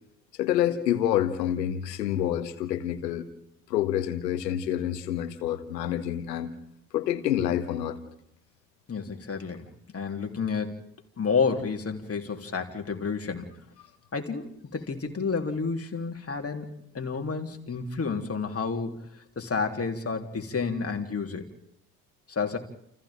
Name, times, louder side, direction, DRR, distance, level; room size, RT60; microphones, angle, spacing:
voice 1, 0.4-3.3 3.7-6.5 6.9-8.0, left 11 dB, 80° left, 11 dB, 1.9 m, -27 dB
voice 2, 8.9-9.7 9.9-10.9 11.2-13.5 14.1-16.7 16.9-18.9 19.4-21.5 22.3-22.6, left 5 dB, 30° left, 4 dB, 3.7 m, -30 dB
29.5 x 29.5 x 3.8 m, 0.74 s
hypercardioid pair, 60°, 49 cm